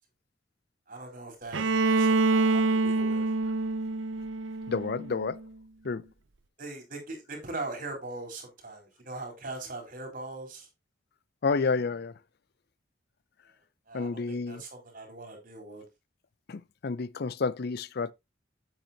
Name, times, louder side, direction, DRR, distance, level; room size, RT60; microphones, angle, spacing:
voice 1, 0.9-3.3 6.6-10.7 13.9-15.8, right 2 dB, 45° right, 4.1 m, -41 dB
Bowed string instrument, 1.5-5.4, right 3 dB, 80° right, 0.7 m, -26 dB
voice 2, 4.7-5.4 5.8-6.1 11.4-12.2 13.9-14.6 16.5-18.1, left 4 dB, 55° left, 0.5 m, -30 dB
8.9 x 8.1 x 2.8 m
head